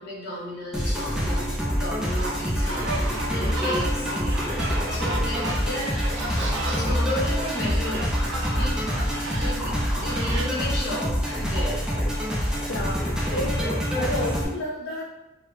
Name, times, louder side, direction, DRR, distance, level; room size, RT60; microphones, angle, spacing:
voice 1, 0.0-1.5 1.7-4.5 4.9-8.1 8.5-8.9 9.4-12.2, equal, 50° left, -5 dB, 1.0 m, -34 dB
sound 1, 0.7-14.4, equal, 5° right, 0.4 m, -26 dB
sound 2, 2.1-10.4, right 2 dB, 70° right, 0.5 m, -33 dB
voice 2, 12.6-15.0, left 1 dB, 80° left, -3 dB, 0.4 m, -31 dB
3.2 x 2.1 x 3.1 m, 1.0 s
head